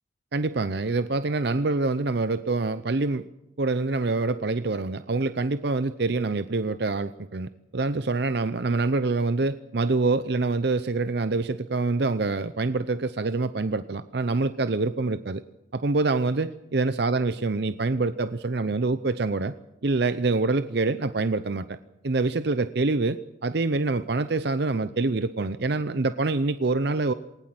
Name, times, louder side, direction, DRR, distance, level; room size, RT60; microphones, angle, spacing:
voice 1, 0.3-3.2 3.6-15.4 15.7-19.5 19.8-21.8 22.0-27.1, right 3 dB, 55° right, 13 dB, 0.6 m, -26 dB
19.5 x 19.5 x 7.8 m, 0.92 s
head